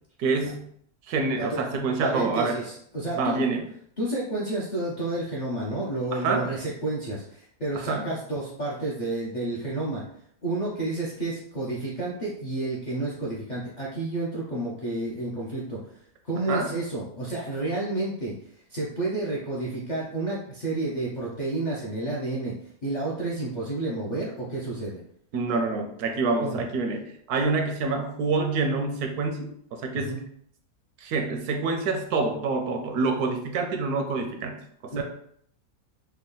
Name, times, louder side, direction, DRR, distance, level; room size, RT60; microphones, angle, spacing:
voice 1, 0.2-0.7 1.1-2.6 3.1-3.6 6.1-6.5 7.8-8.1 16.5-16.7 25.3-30.2 31.0-35.0, right 4 dB, 80° right, 4 dB, 1.1 m, -27 dB
voice 2, 2.0-3.4 4.0-10.0 10.4-15.8 16.2-18.3 18.7-22.5 22.8-25.0 26.4-26.6 29.9-30.2 34.9-35.0, right 2 dB, 50° left, -6 dB, 0.5 m, -30 dB
3.3 x 2.2 x 3.7 m, 0.66 s
omnidirectional pair, 1.6 m